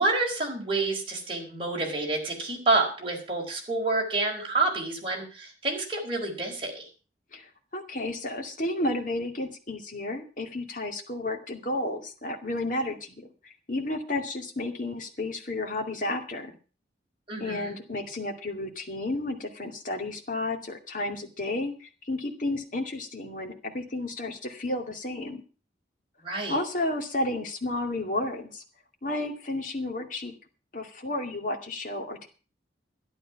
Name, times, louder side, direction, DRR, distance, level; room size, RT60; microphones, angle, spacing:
voice 1, 0.0-6.9 17.3-17.7 26.2-26.6, right 3 dB, 30° right, 0 dB, 4.6 m, -28 dB
voice 2, 7.3-16.6 17.4-25.4 26.5-28.6 29.0-30.3 30.7-32.3, left 2 dB, 45° left, 3 dB, 2.4 m, -32 dB
12.5 x 11.5 x 5.9 m, 0.36 s
head